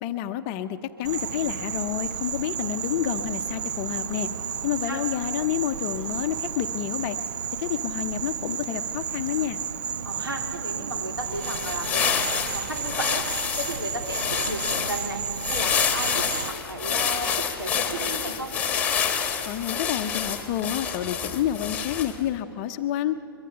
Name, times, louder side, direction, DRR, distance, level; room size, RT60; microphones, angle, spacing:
voice 1, 0.0-4.3 4.6-7.2 7.6-9.6 19.5-23.2, left 11 dB, 30° left, 8 dB, 0.8 m, -29 dB
Insect, 1.0-16.5, right 7 dB, 50° right, 0.8 m, -32 dB
voice 2, 10.0-18.5, right 1 dB, 80° right, 2 dB, 3.5 m, -34 dB
sound 1, 11.2-22.3, left 7 dB, 10° left, 1.7 m, -28 dB
23.0 x 23.0 x 5.8 m, 2.7 s
figure-of-eight pair, 125°, 12 cm